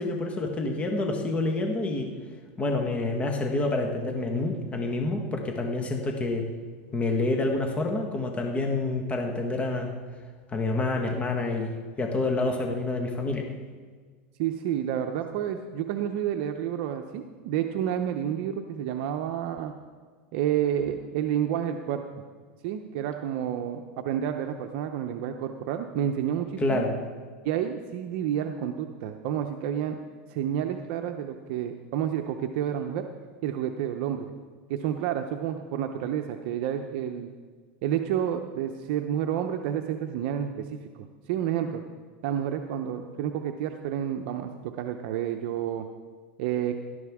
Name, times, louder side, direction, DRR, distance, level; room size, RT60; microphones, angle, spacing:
voice 1, 0.0-2.1 2.6-6.5 6.9-9.9 10.5-11.7 12.0-13.4 26.6-26.9, left 2 dB, 20° left, 2 dB, 1.4 m, -28 dB
voice 2, 14.4-19.7 20.3-22.0 22.6-26.8 27.4-30.0 30.3-33.1 33.4-34.3 34.7-37.3 37.8-40.8 41.3-41.8 42.2-45.9 46.4-46.7, right 10 dB, 60° right, 6 dB, 0.7 m, -30 dB
17.0 x 12.5 x 3.6 m, 1.5 s
supercardioid pair, 135°, 7 cm